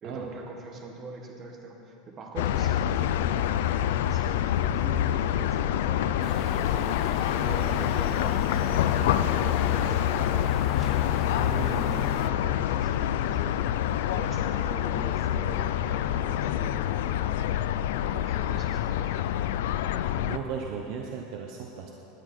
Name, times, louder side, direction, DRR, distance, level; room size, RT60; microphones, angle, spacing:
voice 1, 0.0-7.0 7.3-13.5 14.1-17.2 17.9-19.2, right 3 dB, 25° right, 1 dB, 1.8 m, -41 dB
sound 1, 2.4-20.4, left 11 dB, 80° left, 0.5 m, -26 dB
sound 2, 6.2-12.3, left 6 dB, 25° left, 0.6 m, -38 dB
voice 2, 20.2-21.9, right 7 dB, 50° right, 1 dB, 1.0 m, -36 dB
18.5 x 10.5 x 4.5 m, 3.0 s
supercardioid pair, 155°, 0 cm